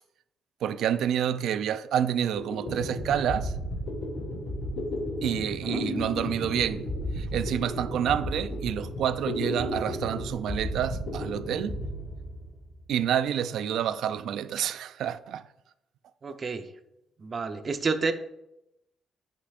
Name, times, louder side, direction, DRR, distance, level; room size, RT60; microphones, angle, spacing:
voice 1, 0.6-3.5 5.2-11.8 12.9-15.4, right 9 dB, 75° right, 0.4 m, -28 dB
sound 1, 2.1-2.2 2.4-12.8, left 1 dB, 70° left, 2.5 m, -33 dB
voice 2, 16.2-16.6 17.2-18.1, right 4 dB, 40° right, 0.7 m, -29 dB
9.9 x 5.8 x 2.5 m
cardioid pair, 90°, 0 cm